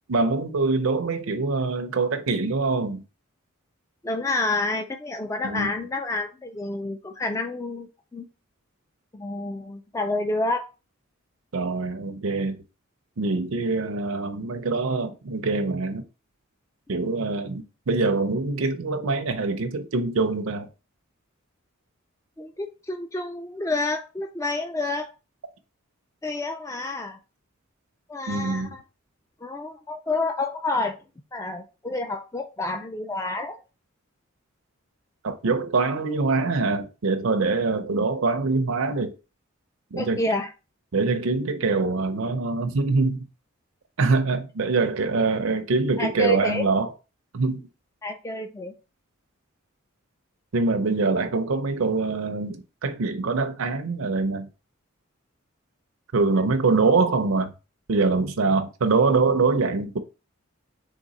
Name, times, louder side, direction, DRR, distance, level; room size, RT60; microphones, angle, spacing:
voice 1, 0.1-3.0 5.4-5.7 11.5-12.6 13.2-16.0 16.9-20.7 28.3-28.7 35.2-39.1 39.9-40.2 40.9-43.3 44.0-46.9 47.3-47.6 50.5-54.5 56.1-57.5 57.9-60.0, right 3 dB, 75° right, 0.6 m, -24 dB
voice 2, 4.0-8.3 9.1-10.7 22.4-25.1 26.2-27.2 28.1-28.8 29.4-31.0 31.3-33.6 39.9-40.5 46.0-46.6 48.0-48.7, left 2 dB, 15° left, 0.3 m, -29 dB
3.7 x 3.5 x 4.0 m
head